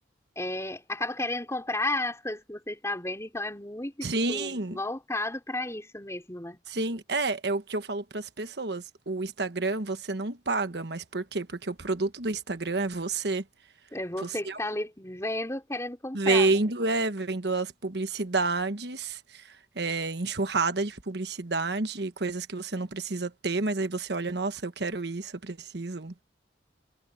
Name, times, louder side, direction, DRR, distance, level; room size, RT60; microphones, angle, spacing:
voice 1, 0.3-6.6 13.9-16.6, left 2 dB, 15° left, 5.2 m, -33 dB
voice 2, 4.0-4.8 6.7-13.4 14.2-14.6 16.1-26.1, right 3 dB, 65° right, 1.3 m, -29 dB
head